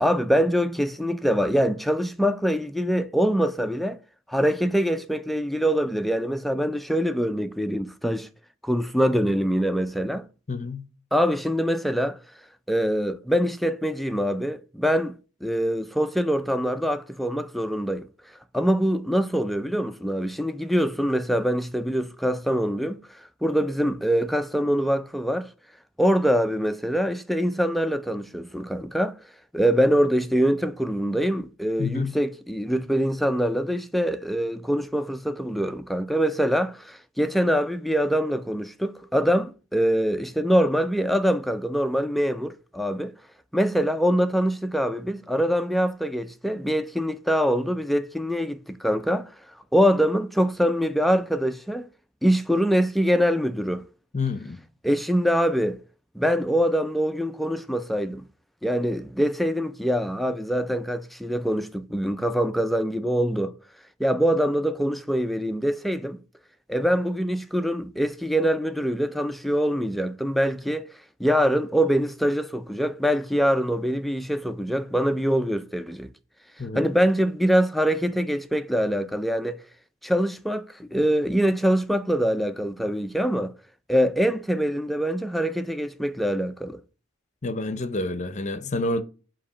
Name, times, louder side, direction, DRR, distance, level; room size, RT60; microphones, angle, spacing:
voice 1, 0.0-4.0 4.3-8.3 8.6-10.3 11.1-12.2 12.7-15.2 15.4-18.1 18.5-25.5 26.0-29.2 29.5-43.1 43.5-49.3 49.7-51.9 52.2-53.8 54.8-55.8 56.2-58.2 58.6-63.5 64.0-66.2 66.7-76.1 76.7-79.6 80.0-83.5 83.9-86.8, equal, ahead, 0.3 m, -24 dB
voice 2, 10.5-10.8 31.8-32.1 54.1-54.6 76.6-76.9 87.4-89.0, left 3 dB, 35° left, 0.7 m, -28 dB
8.4 x 2.9 x 5.0 m
head